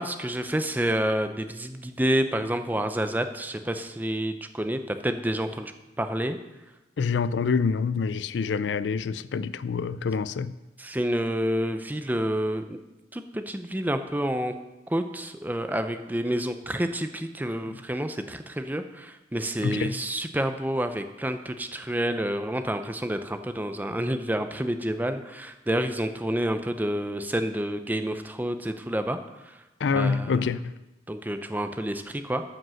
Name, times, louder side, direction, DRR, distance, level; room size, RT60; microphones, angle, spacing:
voice 1, 0.0-5.7 6.0-6.4 10.8-12.8 13.1-14.5 14.9-29.2 29.4-29.6 29.9-30.5 31.1-32.4, right 1 dB, 10° right, 0.5 m, -29 dB
voice 2, 7.0-10.5 17.7-17.8 19.6-20.0 29.8-30.7, left 5 dB, 90° left, 0.4 m, -26 dB
13.5 x 5.2 x 6.3 m
head